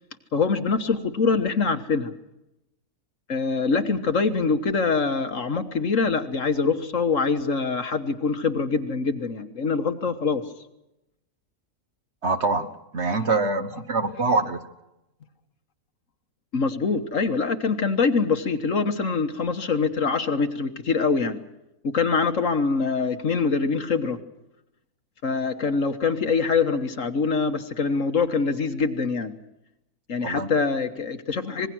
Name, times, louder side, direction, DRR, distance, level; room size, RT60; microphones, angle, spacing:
voice 1, 0.3-2.1 3.3-10.4 16.5-21.4 21.9-24.2 25.2-29.3 30.1-31.7, left 4 dB, 55° left, 8 dB, 1.7 m, -24 dB
voice 2, 12.2-14.6 30.2-30.5, right 3 dB, 45° right, 9 dB, 1.5 m, -25 dB
26.0 x 20.5 x 6.2 m, 0.90 s
omnidirectional pair, 1.6 m